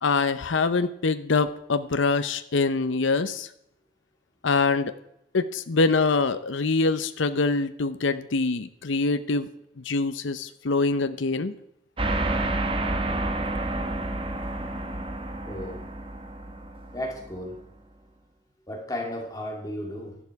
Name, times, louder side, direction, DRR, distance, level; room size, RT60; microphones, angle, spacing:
voice 1, 0.0-3.5 4.4-4.9 5.3-9.5 9.8-11.5, left 3 dB, 80° left, 11 dB, 0.7 m, -24 dB
sound 1, 12.0-17.8, right 2 dB, 25° right, 1.3 m, -30 dB
voice 2, 15.4-15.9 16.9-17.6 18.7-20.2, left 1 dB, 20° left, 1 dB, 2.3 m, -34 dB
13.5 x 11.5 x 4.7 m, 0.79 s
head